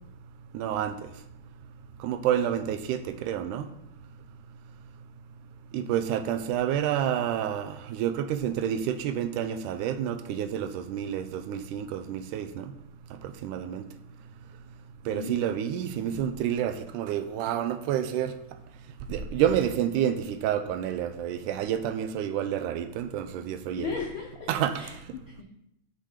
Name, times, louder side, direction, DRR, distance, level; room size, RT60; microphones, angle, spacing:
voice 1, 0.5-1.0 2.0-3.7 5.7-12.7 13.2-13.9 15.1-18.3 19.1-23.9 24.5-24.9, right 10 dB, 90° right, 2.1 m, -29 dB
voice 2, 15.1-15.4 23.8-24.5 24.8-25.4, left 6 dB, 80° left, 1.2 m, -36 dB
6.5 x 5.1 x 4.9 m
omnidirectional pair, 3.5 m